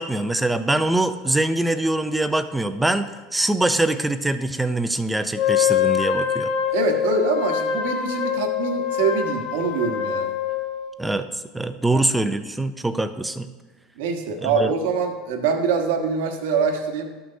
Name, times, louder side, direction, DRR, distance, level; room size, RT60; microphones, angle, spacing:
voice 1, 0.0-6.5 11.0-11.3 11.5-13.5 14.4-14.7, right 2 dB, 5° right, 10 dB, 0.6 m, -23 dB
Wind instrument woodwind instrument, 5.3-11.0, left 9 dB, 50° left, 0.8 m, -24 dB
voice 2, 6.7-10.3 11.9-12.0 14.0-17.2, right 5 dB, 75° right, 4 dB, 1.2 m, -24 dB
12.5 x 5.9 x 2.8 m, 1.3 s
hypercardioid pair, 100°, 0 cm